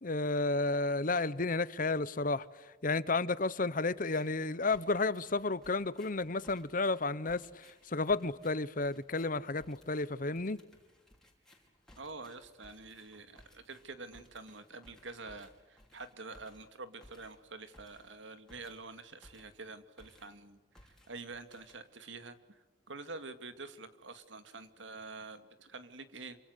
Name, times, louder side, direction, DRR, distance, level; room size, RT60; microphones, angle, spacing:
voice 1, 0.0-2.5 2.8-10.6, left 3 dB, 45° left, 1.0 m, -32 dB
sound 1, 4.0-4.4 4.7-19.7 20.0-20.4 20.7-22.2, left 1 dB, 5° left, 5.4 m, -62 dB
voice 2, 12.0-26.4, right 3 dB, 85° right, 2.3 m, -47 dB
28.0 x 25.5 x 8.2 m
head